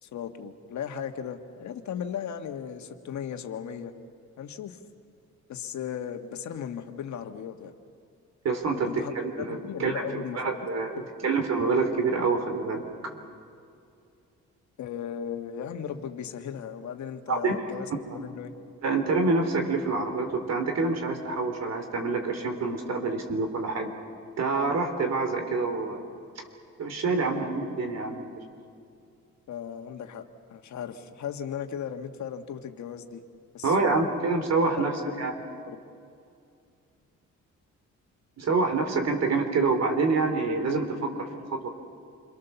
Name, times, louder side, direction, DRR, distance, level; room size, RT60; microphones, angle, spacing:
voice 1, 0.0-3.9 4.4-4.8 5.5-7.7 8.8-9.1 9.4-10.4 14.8-18.5 29.5-33.2 33.5-34.0 34.7-35.0 35.7-35.8, left 8 dB, 70° left, 7 dB, 1.7 m, -36 dB
voice 2, 8.4-8.9 9.2-10.0 10.3-13.1 17.3-17.5 18.8-23.9 24.4-26.1 26.8-28.3 33.6-34.9 35.2-35.3 38.4-41.7, right 3 dB, 60° right, 6 dB, 3.7 m, -27 dB
28.5 x 23.0 x 7.0 m, 2.4 s
cardioid pair, 90°, 30 cm